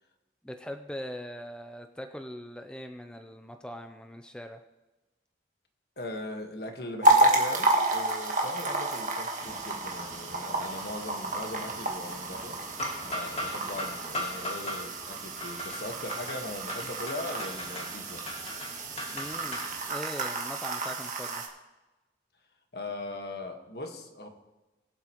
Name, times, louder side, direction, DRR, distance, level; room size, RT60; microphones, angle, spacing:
voice 1, 0.4-4.6 19.1-21.4, equal, 5° left, 6 dB, 0.5 m, -41 dB
voice 2, 6.0-12.6 13.0-18.2 22.7-24.3, left 1 dB, 65° left, 4 dB, 1.5 m, -39 dB
sound 1, 7.0-21.5, right 2 dB, 45° right, 1.8 m, -30 dB
sound 2, 9.4-19.9, left 1 dB, 35° left, 1.9 m, -40 dB
22.5 x 7.8 x 3.0 m, 1.1 s
head